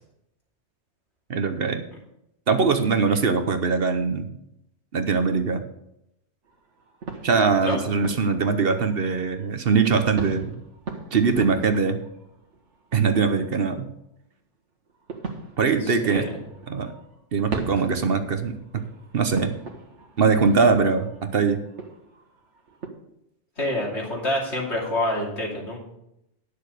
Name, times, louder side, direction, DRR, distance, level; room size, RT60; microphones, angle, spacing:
voice 1, 1.3-1.8 2.5-4.3 4.9-5.6 7.2-10.6 11.1-12.0 12.9-13.9 15.6-16.3 16.7-16.9 17.3-18.8 19.1-19.6 20.2-21.6, right 5 dB, 55° right, 8 dB, 1.1 m, -22 dB
sound 1, 6.4-9.5 9.8-13.8 14.9-22.9, right 4 dB, 75° right, 1.7 m, -39 dB
voice 2, 15.8-16.3 23.6-25.8, left 1 dB, 70° left, -2 dB, 3.2 m, -27 dB
10.5 x 6.7 x 6.6 m, 0.82 s
omnidirectional pair, 1.2 m